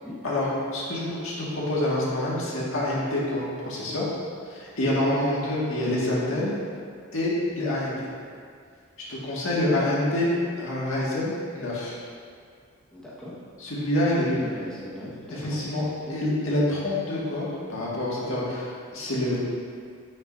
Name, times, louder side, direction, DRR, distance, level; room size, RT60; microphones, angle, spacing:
voice 1, 0.2-4.0 4.5-6.6 7.1-8.1 9.1-12.0 13.6-14.4 15.3-19.4, left 1 dB, 65° left, -6 dB, 2.0 m, -27 dB
voice 2, 12.9-13.3 14.1-16.2, left 1 dB, 5° left, -9 dB, 1.5 m, -40 dB
9.5 x 8.8 x 2.7 m, 2.1 s
head